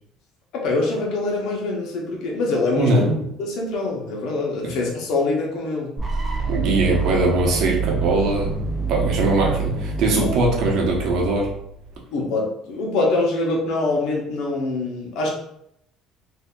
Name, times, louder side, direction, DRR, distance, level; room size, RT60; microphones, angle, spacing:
voice 1, 0.5-2.9 3.4-5.9 10.2-10.3 12.1-15.3, left 2 dB, 60° left, -1 dB, 0.9 m, -24 dB
voice 2, 2.8-3.2 4.6-4.7 6.5-8.5 8.9-11.5, right 2 dB, 55° right, -1 dB, 0.9 m, -21 dB
sound 1, 6.0-11.9, right 5 dB, 10° right, 0.4 m, -26 dB
4.0 x 2.7 x 2.3 m, 0.74 s
cardioid pair, 170°, 0 cm